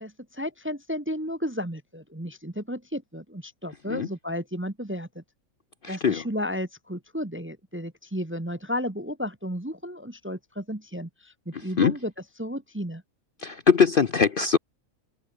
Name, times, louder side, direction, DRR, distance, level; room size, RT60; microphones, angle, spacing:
voice 1, 0.0-5.2 5.9-12.1 12.4-13.0, equal, 10° right, 0.9 m, -33 dB
voice 2, 5.8-6.2 11.8-11.9 13.4-14.6, left 6 dB, 45° left, 0.8 m, -21 dB
omnidirectional pair, 1.5 m